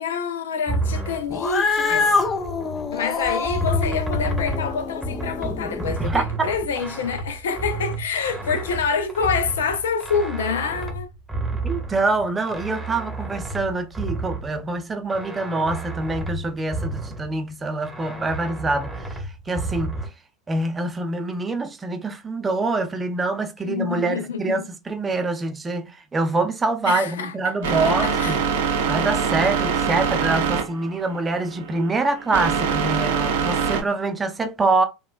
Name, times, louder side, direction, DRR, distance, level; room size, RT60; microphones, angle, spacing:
voice 1, 0.0-2.2 2.9-11.1 23.7-24.7 26.8-27.3 27.6-28.4, left 5 dB, 75° left, 0.5 m, -27 dB
sound 1, 0.7-2.9 3.2-14.7 15.1-17.4 17.8-20.1, right 1 dB, 5° right, 1.0 m, -31 dB
Cat, 1.3-5.9, left 4 dB, 30° left, 0.5 m, -26 dB
voice 2, 6.0-6.5 11.6-20.1 20.5-28.5 28.9-34.8, right 3 dB, 20° right, 0.6 m, -25 dB
sound 2, 27.6-33.8, right 6 dB, 70° right, 0.7 m, -24 dB
3.8 x 2.4 x 2.2 m
hypercardioid pair, 80°, 0 cm